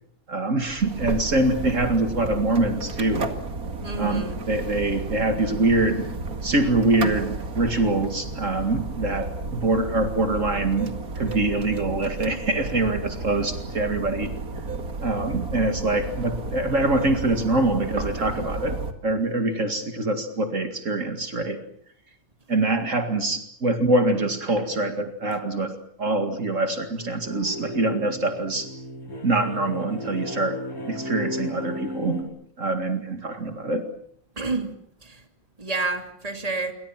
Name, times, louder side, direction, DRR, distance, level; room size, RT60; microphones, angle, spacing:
voice 1, 0.3-3.3 4.0-6.1 6.4-14.3 15.0-21.6 22.5-28.7 29.2-30.6 30.9-32.2 32.6-33.9, right 2 dB, 60° right, 7 dB, 2.5 m, -24 dB
sound 1, 0.6-18.9, right 3 dB, 90° right, 2.6 m, -33 dB
voice 2, 3.8-4.4 34.4-34.7 35.0-35.2 35.6-36.7, right 3 dB, 25° right, 6 dB, 2.9 m, -29 dB
sound 2, 26.9-32.2, left 1 dB, 85° left, 6.1 m, -34 dB
27.5 x 24.5 x 7.4 m, 0.65 s
omnidirectional pair, 1.5 m